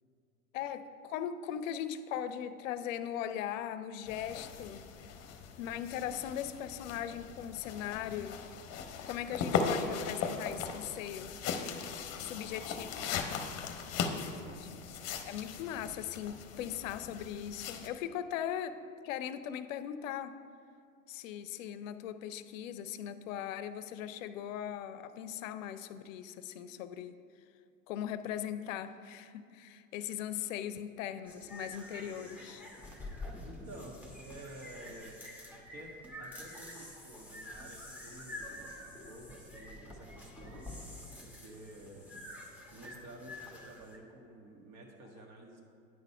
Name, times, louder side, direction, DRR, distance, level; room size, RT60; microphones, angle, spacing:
voice 1, 0.5-4.8 5.6-8.4 9.1-11.3 12.2-13.3 14.6-14.7 15.0-18.8 19.0-20.4 21.1-27.2 27.9-32.7, left 10 dB, 70° left, 12 dB, 0.6 m, -39 dB
sound 1, 4.1-17.9, left 6 dB, 40° left, 0.8 m, -38 dB
voice 2, 12.3-12.8 14.3-14.8 33.4-40.7 41.2-42.1 42.7-45.6, right 1 dB, 50° right, 0 dB, 1.6 m, -51 dB
sound 2, 31.3-44.0, left 1 dB, 5° right, 1.1 m, -47 dB
9.6 x 4.0 x 5.4 m, 2.5 s
hypercardioid pair, 95°, 41 cm